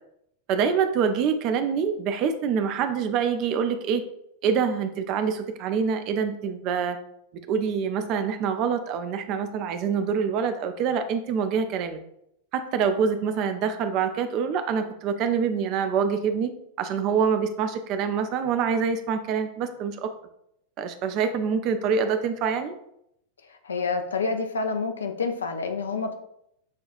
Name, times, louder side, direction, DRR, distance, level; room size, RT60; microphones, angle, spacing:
voice 1, 0.5-4.0 4.4-7.0 7.4-12.0 12.5-16.5 16.8-20.1 20.8-22.7, right 6 dB, 40° right, 8 dB, 0.4 m, -25 dB
voice 2, 23.5-26.1, left 4 dB, 70° left, 6 dB, 0.4 m, -28 dB
6.4 x 2.3 x 2.5 m, 0.76 s
figure-of-eight pair, 90°, 0 cm